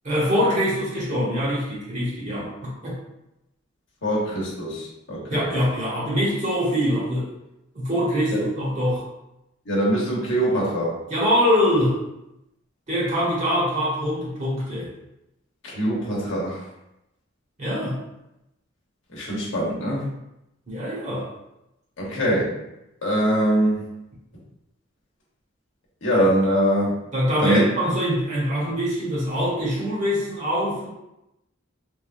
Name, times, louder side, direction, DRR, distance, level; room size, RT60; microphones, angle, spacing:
voice 1, 0.0-3.0 5.3-7.3 7.7-9.1 11.1-12.0 12.9-14.9 17.6-18.0 20.7-21.3 27.1-30.9, equal, 35° right, -7 dB, 1.0 m, -24 dB
voice 2, 4.0-5.5 8.3-8.4 9.6-11.0 15.6-16.6 19.1-20.1 22.0-22.6 23.0-23.9 26.0-27.0 27.4-27.6, equal, 70° left, -4 dB, 0.9 m, -23 dB
3.2 x 2.2 x 2.4 m, 0.89 s
head